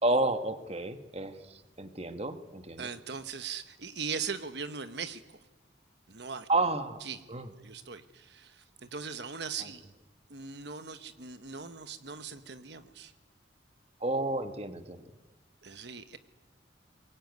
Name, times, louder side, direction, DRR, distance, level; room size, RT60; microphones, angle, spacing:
voice 1, 0.0-2.9 6.5-7.0 7.3-7.5 14.0-15.1, right 2 dB, 30° right, 9 dB, 1.4 m, -31 dB
voice 2, 2.8-5.4 6.1-6.5 7.0-7.2 7.6-9.8 10.3-13.1 15.6-16.2, right 5 dB, 65° right, 10 dB, 1.2 m, -40 dB
26.5 x 22.5 x 9.5 m, 1.1 s
head